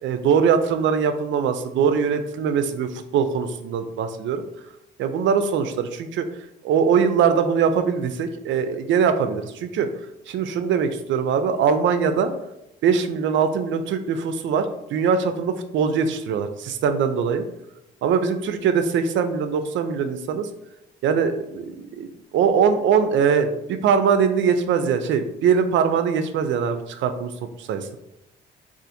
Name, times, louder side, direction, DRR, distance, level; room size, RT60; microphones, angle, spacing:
voice 1, 0.0-4.4 5.0-6.3 6.6-9.9 10.3-12.3 12.8-17.5 18.0-20.5 21.0-22.1 22.3-27.9, right 6 dB, 70° right, 9 dB, 0.4 m, -22 dB
2.6 x 2.4 x 4.1 m, 0.85 s
cardioid pair, 90°, 20 cm